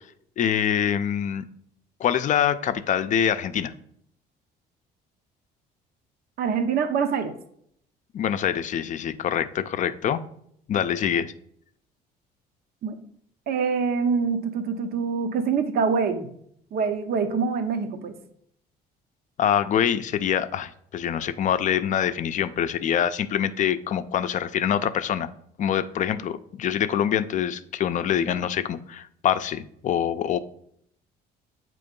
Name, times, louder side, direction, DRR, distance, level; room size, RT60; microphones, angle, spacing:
voice 1, 0.4-1.4 2.0-3.7 8.1-10.2 10.7-11.3 19.4-25.3 25.6-30.4, left 9 dB, 45° left, 12 dB, 0.5 m, -25 dB
voice 2, 6.4-7.3 12.8-13.0 13.5-16.3 16.7-18.2, right 5 dB, 65° right, 7 dB, 0.8 m, -25 dB
7.8 x 3.1 x 5.2 m, 0.68 s
cardioid pair, 110°, 17 cm